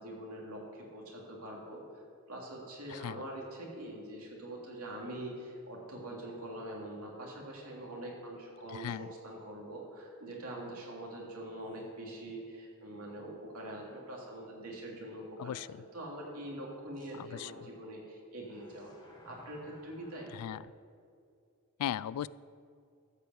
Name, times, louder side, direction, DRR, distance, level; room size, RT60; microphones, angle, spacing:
voice 1, 0.0-1.8 2.3-15.7 15.9-18.9 19.2-20.3, right 1 dB, 75° right, -2 dB, 2.9 m, -44 dB
voice 2, 2.9-3.2 8.7-9.1 15.4-15.8 17.1-17.7 20.3-20.6 21.8-22.3, left 10 dB, 80° left, 18 dB, 0.3 m, -38 dB
sound 1, 11.7-11.8 12.4-12.5 16.9-17.1 18.4-20.6, left 1 dB, 20° left, 1.7 m, -59 dB
13.0 x 5.3 x 7.8 m, 2.4 s
head